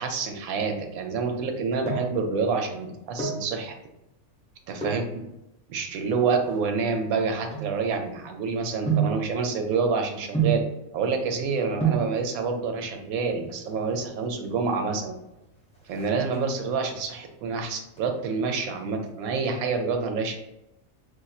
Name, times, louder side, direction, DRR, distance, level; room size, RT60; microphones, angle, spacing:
voice 1, 0.0-3.7 4.7-5.0 5.7-10.6 10.9-15.1 15.9-20.4, right 5 dB, 90° right, 4 dB, 1.0 m, -27 dB
sound 1, 1.6-2.3 3.0-3.5 4.7-5.1 5.8-8.2 8.9-9.3 10.3-10.8 11.5-11.6 11.8-12.2 13.3-13.8 14.1-14.2 14.4-14.6 14.9-15.3 15.6-16.7 17.1-17.5 17.9-19.1 19.3-19.4, right 6 dB, 5° left, 0.7 m, -29 dB
4.2 x 2.6 x 2.3 m, 0.89 s
omnidirectional pair, 1.5 m